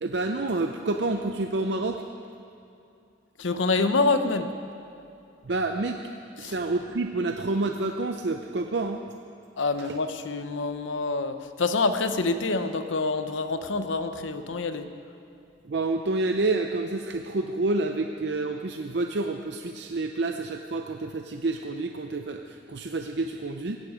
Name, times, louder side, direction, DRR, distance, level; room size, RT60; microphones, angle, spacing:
voice 1, 0.0-2.0 5.4-6.0 6.4-9.0 9.8-10.0 15.6-23.8, right 2 dB, 60° right, 5 dB, 0.6 m, -28 dB
voice 2, 3.4-4.5 6.4-6.5 9.6-14.9, left 3 dB, 80° left, 9 dB, 0.9 m, -26 dB
16.0 x 16.0 x 5.0 m, 2.6 s
head